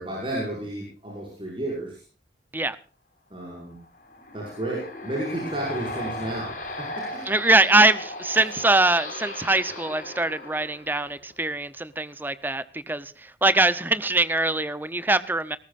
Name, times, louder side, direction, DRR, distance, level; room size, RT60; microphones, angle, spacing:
voice 1, 0.0-2.0 3.3-3.8 4.3-7.3, right 1 dB, 30° right, 5.8 m, -32 dB
sound 1, 3.8-11.3, left 1 dB, 45° left, 7.6 m, -37 dB
voice 2, 7.3-15.6, right 2 dB, 10° right, 0.7 m, -23 dB
19.5 x 19.0 x 2.5 m
head